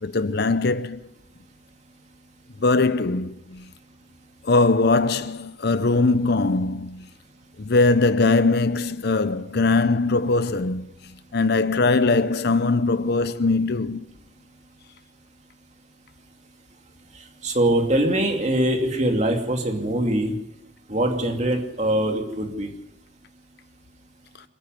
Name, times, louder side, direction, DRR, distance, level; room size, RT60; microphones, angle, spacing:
voice 1, 0.0-1.0 2.6-3.7 4.4-7.1 7.6-14.1, left 3 dB, 55° left, 0.7 m, -21 dB
voice 2, 17.1-20.3 20.9-22.7, right 1 dB, 35° right, 2.8 m, -23 dB
27.0 x 10.5 x 9.4 m
head